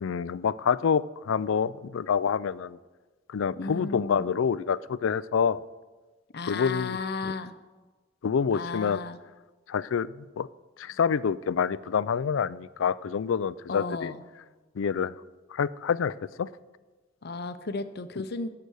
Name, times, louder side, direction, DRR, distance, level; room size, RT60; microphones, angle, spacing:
voice 1, 0.0-2.8 3.3-5.6 6.4-7.0 7.2-7.3 8.2-9.0 9.7-10.5 10.8-14.1 14.8-15.1 15.5-16.5, left 6 dB, 90° left, 18 dB, 0.4 m, -27 dB
voice 2, 3.6-4.3 6.3-7.5 8.5-9.2 13.7-14.2 17.2-18.5, left 3 dB, 55° left, 11 dB, 0.7 m, -34 dB
16.5 x 6.8 x 6.4 m, 1.2 s
head